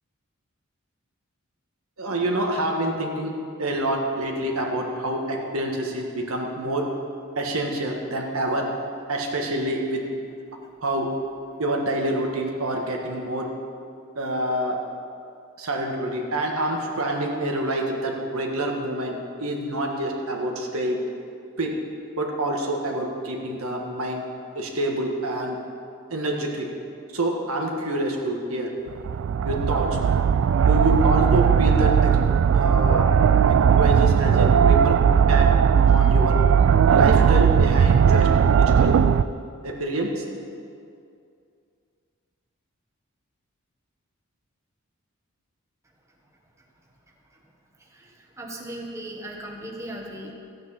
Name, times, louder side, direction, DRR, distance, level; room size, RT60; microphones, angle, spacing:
voice 1, 2.0-3.3 3.6-6.8 7.3-8.7 9.1-10.0 10.8-11.1 11.6-13.5 14.1-14.8 15.6-19.1 19.4-21.0 21.6-21.7 22.2-24.2 24.5-25.6 26.1-26.6 27.1-28.7 29.4-29.9 30.6-32.2 32.5-33.1 33.8-35.5 35.9-36.3 36.9-38.3 38.6-38.9 39.6-40.2, right 1 dB, 85° right, 1 dB, 1.6 m, -27 dB
sound 1, 28.9-39.2, right 7 dB, 65° right, 0.3 m, -18 dB
voice 2, 48.4-50.3, right 1 dB, 15° right, -1 dB, 1.3 m, -37 dB
14.0 x 9.0 x 5.8 m, 2.4 s
head